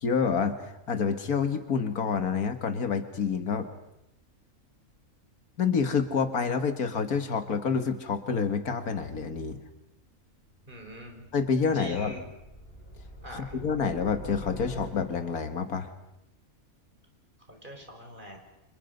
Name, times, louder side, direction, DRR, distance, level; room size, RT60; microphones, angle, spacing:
voice 1, 0.0-3.7 5.6-9.6 11.3-12.1 13.3-15.9, left 6 dB, 90° left, 8 dB, 2.2 m, -28 dB
sound 1, 10.2-15.5, left 2 dB, 70° left, 5.2 m, -44 dB
voice 2, 10.7-11.2 11.7-12.3 13.2-13.6 17.5-18.4, equal, 35° right, 3 dB, 4.6 m, -44 dB
30.0 x 26.5 x 5.4 m, 0.86 s
omnidirectional pair, 1.5 m